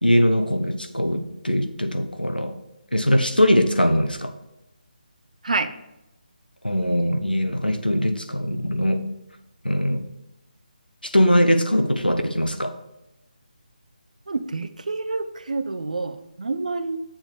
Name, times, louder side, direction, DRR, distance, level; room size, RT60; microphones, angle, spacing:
voice 1, 0.0-2.6 2.9-4.3 6.6-9.0 9.6-10.1 11.0-12.7, equal, 90° left, 8 dB, 1.0 m, -21 dB
voice 2, 14.3-17.0, right 3 dB, 55° right, 11 dB, 0.6 m, -28 dB
7.3 x 7.3 x 3.4 m, 0.94 s
figure-of-eight pair, 150°, 5 cm